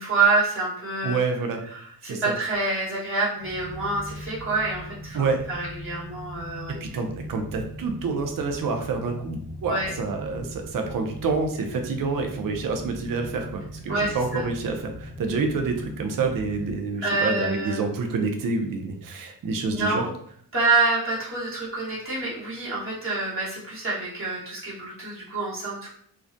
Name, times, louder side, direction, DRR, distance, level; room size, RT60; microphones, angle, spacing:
voice 1, 0.0-1.2 1.7-6.8 9.6-9.9 13.9-14.5 17.0-17.8 19.7-20.1 20.5-25.9, right 3 dB, 30° right, -7 dB, 1.2 m, -27 dB
voice 2, 1.0-1.6 2.0-2.3 5.1-5.4 6.8-20.0, right 4 dB, 55° right, 4 dB, 0.5 m, -28 dB
sound 1, 3.4-16.8, equal, 15° left, 0.8 m, -40 dB
2.3 x 2.1 x 2.5 m, 0.64 s
cardioid pair, 45°, 41 cm